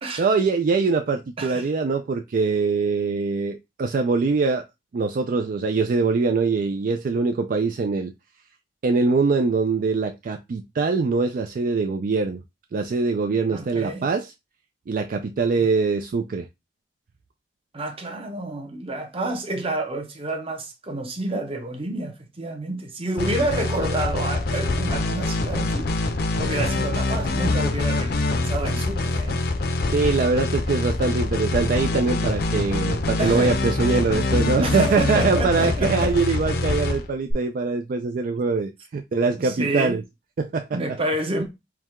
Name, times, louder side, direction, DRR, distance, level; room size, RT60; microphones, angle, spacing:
voice 1, 0.2-4.6 4.9-8.1 8.8-12.4 12.7-14.3 14.9-16.5 29.9-40.0 40.4-40.8, right 4 dB, 50° right, 0.3 m, -23 dB
voice 2, 13.5-14.1 17.7-25.9 26.4-29.4 33.2-33.5 34.6-36.1 39.4-40.0 40.7-41.5, right 2 dB, 35° right, 0.8 m, -29 dB
sound 1, 23.2-37.3, left 2 dB, 60° left, 0.6 m, -24 dB
4.6 x 2.2 x 3.5 m
head